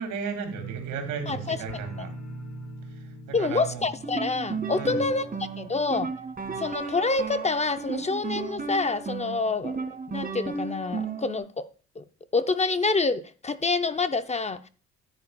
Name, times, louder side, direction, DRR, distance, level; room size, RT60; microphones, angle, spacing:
voice 1, 0.0-2.1 2.9-3.8 4.7-5.0 6.4-6.6, right 6 dB, 85° right, 2.2 m, -35 dB
sound 1, 0.5-7.4 7.7-8.2 8.6-8.7, right 3 dB, 65° left, 3.8 m, -42 dB
voice 2, 1.3-1.6 3.3-5.2 5.6-6.1 6.6-11.7 12.0-12.1 12.3-14.7, left 3 dB, 25° left, 0.5 m, -27 dB
sound 2, 3.9-11.4, right 4 dB, 30° right, 1.8 m, -34 dB
10.0 x 9.7 x 2.3 m
cardioid pair, 90°, 30 cm